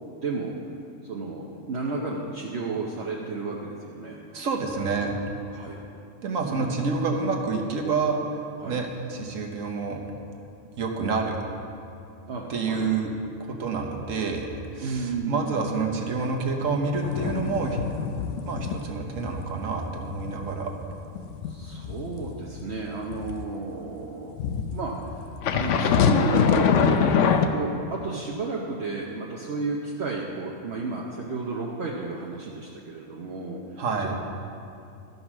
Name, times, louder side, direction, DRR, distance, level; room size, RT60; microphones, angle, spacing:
voice 1, 0.2-0.6 1.1-4.3 5.5-5.8 6.4-6.7 8.6-8.8 12.3-12.9 14.8-15.7 21.5-34.1, right 3 dB, 60° right, -2 dB, 1.0 m, -33 dB
voice 2, 4.3-5.2 6.2-8.2 8.6-10.0 10.8-11.4 12.5-13.1 13.4-14.5 14.7-17.8 18.4-20.7 33.8-34.1, right 4 dB, 85° right, 2 dB, 1.4 m, -28 dB
sound 1, 17.0-18.9 19.2-19.5 19.8-23.4 24.4-27.5, left 6 dB, 75° left, 0.9 m, -24 dB
13.0 x 5.4 x 6.0 m, 2.6 s
omnidirectional pair, 1.3 m